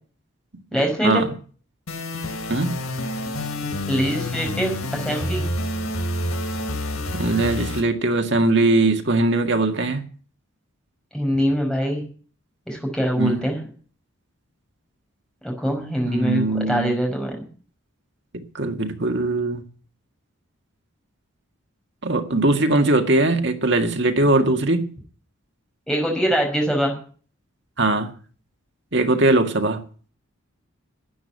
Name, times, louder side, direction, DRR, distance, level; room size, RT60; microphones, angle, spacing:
voice 1, 0.7-1.2 3.9-5.4 11.1-12.0 12.7-13.6 15.4-17.5 25.9-27.0, equal, 5° left, 5.5 m, -23 dB
sound 1, 1.9-7.8, left 1 dB, 80° left, 3.7 m, -28 dB
voice 2, 2.5-2.8 7.1-10.0 13.2-13.4 16.0-17.0 18.3-19.6 22.0-24.9 27.8-28.1 28.9-29.8, right 2 dB, 55° right, 1.9 m, -20 dB
12.5 x 9.3 x 9.4 m
head